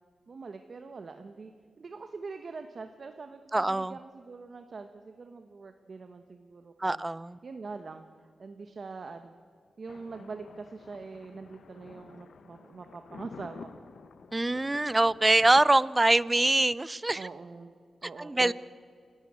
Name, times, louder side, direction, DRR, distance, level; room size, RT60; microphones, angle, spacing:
voice 1, 0.3-1.5 1.8-7.1 7.4-8.1 8.4-9.4 9.8-13.9 17.1-17.7 18.0-18.5, right 4 dB, 55° right, 7 dB, 1.1 m, -43 dB
voice 2, 3.5-4.0 6.8-7.4 14.3-17.3 18.2-18.5, right 2 dB, 20° right, 19 dB, 0.5 m, -24 dB
Thunder, 9.9-15.6, left 5 dB, 75° left, 1.1 m, -50 dB
28.0 x 12.5 x 8.7 m, 2.1 s
cardioid pair, 75°, 0 cm